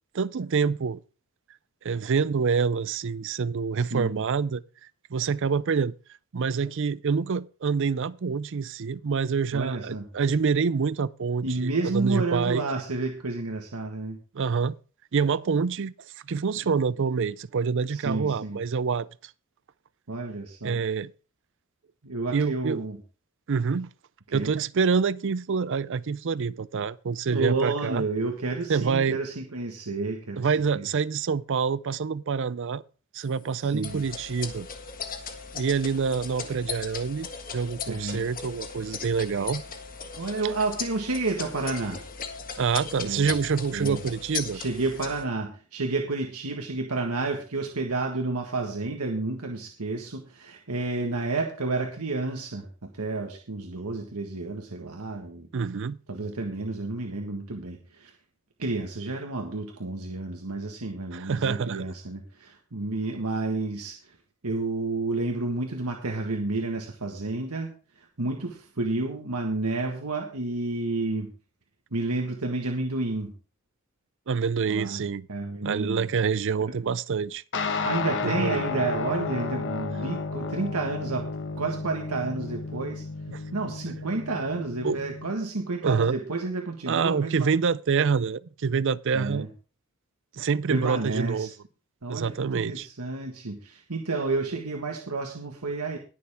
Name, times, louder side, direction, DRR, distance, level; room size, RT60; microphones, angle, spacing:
voice 1, 0.1-1.0 1.8-4.6 5.1-5.9 6.3-12.6 14.3-14.7 15.1-15.9 16.2-19.1 20.6-21.1 22.3-22.8 23.5-23.9 24.3-28.0 28.7-29.2 30.4-32.8 33.1-34.7 35.5-37.3 37.5-39.6 42.6-44.6 55.5-56.0 61.1-61.9 74.3-75.3 75.6-77.4 78.2-78.6 83.3-83.4 84.8-85.0 85.8-86.2 86.9-89.5 90.3-91.5 92.1-92.9, right 5 dB, 55° right, 0.5 m, -26 dB
voice 2, 3.8-4.2 9.5-10.1 11.4-14.2 17.9-18.6 20.1-20.8 22.0-23.0 24.3-24.5 27.3-30.9 33.6-34.0 37.9-38.3 40.2-42.0 43.0-43.3 43.7-44.0 44.5-55.5 56.1-58.1 58.6-64.2 64.4-67.7 68.0-71.3 71.9-73.3 74.7-75.0 75.3-76.1 77.8-81.3 81.6-83.0 83.5-87.5 89.1-89.5 90.7-91.5 92.0-96.0, right 3 dB, 85° right, 1.6 m, -30 dB
sound 1, 33.8-45.2, left 6 dB, 40° left, 1.6 m, -38 dB
sound 2, 77.5-85.3, left 4 dB, 55° left, 1.2 m, -32 dB
20.0 x 6.9 x 3.6 m
head